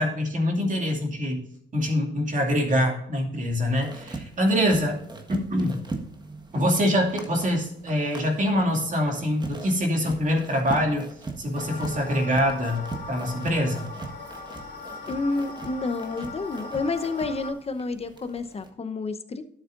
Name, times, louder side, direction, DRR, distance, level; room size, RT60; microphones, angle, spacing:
voice 1, 0.0-1.4 1.7-5.0 5.3-5.8 6.5-11.1 11.4-12.8 13.1-13.9, equal, 40° right, 1 dB, 2.4 m, -24 dB
sound 1, 3.6-18.7, right 3 dB, 20° right, 1.5 m, -40 dB
sound 2, 11.5-17.5, left 3 dB, 60° left, 3.9 m, -39 dB
voice 2, 15.1-19.4, left 3 dB, 30° left, 9 dB, 0.9 m, -29 dB
12.0 x 7.3 x 2.6 m, 0.72 s
cardioid pair, 90°, 20 cm